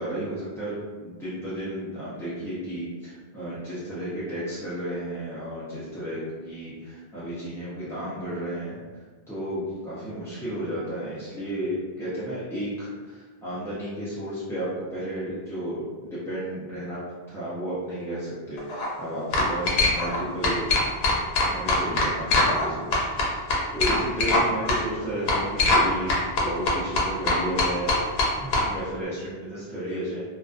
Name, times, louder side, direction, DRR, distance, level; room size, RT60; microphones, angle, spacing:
voice 1, 0.0-8.8 9.3-17.0 17.3-20.7 21.5-26.1 26.4-27.9 28.4-30.2, right 1 dB, 5° left, -12 dB, 0.3 m, -33 dB
sound 1, 18.6-18.9 19.3-20.2 20.4-22.6 22.9-24.4 24.7-24.8 25.3-25.8 26.1-28.6, left 2 dB, 80° left, 0.8 m, -22 dB
2.5 x 2.3 x 2.3 m, 1.4 s
omnidirectional pair, 1.0 m